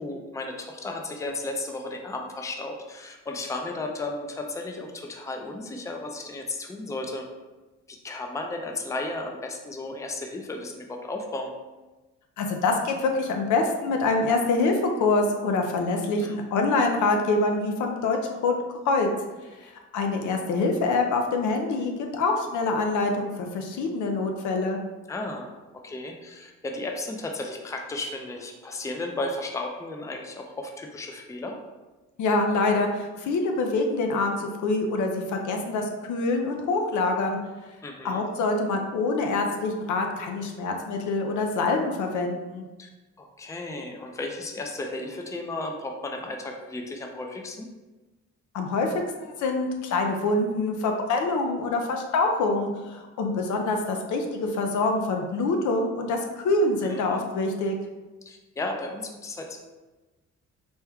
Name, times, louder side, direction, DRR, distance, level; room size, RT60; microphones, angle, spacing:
voice 1, 0.0-7.2 7.9-11.5 16.2-16.3 25.1-25.5 25.8-31.6 37.8-38.2 42.8-42.9 43.2-47.7 56.8-57.2 58.3-59.6, left 2 dB, 10° left, 3 dB, 0.4 m, -34 dB
voice 2, 12.4-18.5 18.8-19.1 19.6-24.8 32.2-37.4 38.0-42.7 48.5-48.9 49.2-57.8, left 3 dB, 75° left, 3 dB, 0.6 m, -25 dB
4.4 x 2.2 x 3.5 m, 1.2 s
cardioid pair, 90°, 30 cm